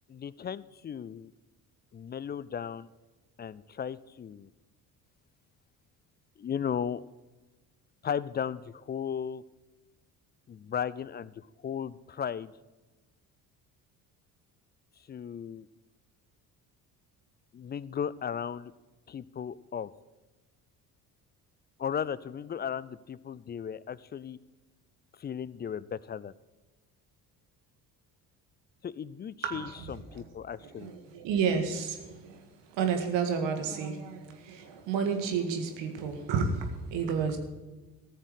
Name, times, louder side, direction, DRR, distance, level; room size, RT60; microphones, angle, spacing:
voice 1, 0.1-1.3 1.9-2.9 3.4-4.5 6.4-7.0 8.0-9.4 10.5-12.5 15.1-15.7 17.5-18.7 19.1-19.9 21.8-24.4 25.2-26.3 28.8-30.9, left 8 dB, 25° left, 19 dB, 0.4 m, -36 dB
voice 2, 30.6-32.4 32.7-37.4, right 6 dB, 65° right, 5 dB, 1.9 m, -31 dB
14.5 x 6.6 x 8.1 m, 1.2 s
hypercardioid pair, 55°, 47 cm